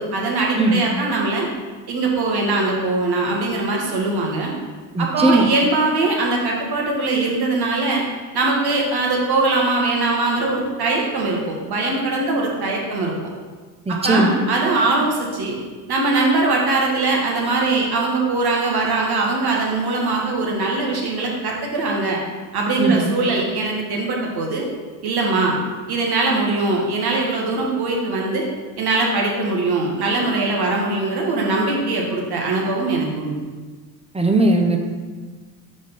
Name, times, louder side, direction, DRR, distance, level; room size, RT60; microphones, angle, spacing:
voice 1, 0.0-1.5 1.9-4.5 5.0-8.0 8.3-13.1 13.9-15.5 15.9-22.2 22.5-24.7 25.0-25.5 25.9-28.5 28.8-33.3, right 3 dB, 50° right, -1 dB, 1.6 m, -21 dB
voice 2, 4.9-5.5 13.9-14.4 22.8-23.1 34.1-34.8, right 2 dB, 10° right, 3 dB, 0.8 m, -18 dB
4.8 x 3.8 x 5.7 m, 1.4 s
supercardioid pair, 75°, 50 cm